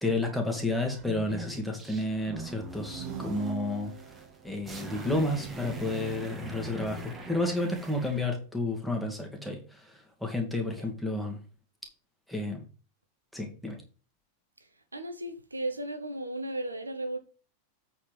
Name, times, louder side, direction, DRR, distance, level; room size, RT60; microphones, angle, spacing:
voice 1, 0.0-3.9 4.4-11.4 12.3-12.6 13.3-13.8, left 2 dB, ahead, 2.2 m, -31 dB
sound 1, 0.9-8.3, right 3 dB, 15° right, 1.8 m, -43 dB
sound 2, 2.9-4.5, right 10 dB, 55° right, 0.6 m, -41 dB
voice 2, 14.6-17.2, right 1 dB, 80° right, 1.0 m, -36 dB
8.2 x 4.5 x 5.1 m
figure-of-eight pair, 90°, 0 cm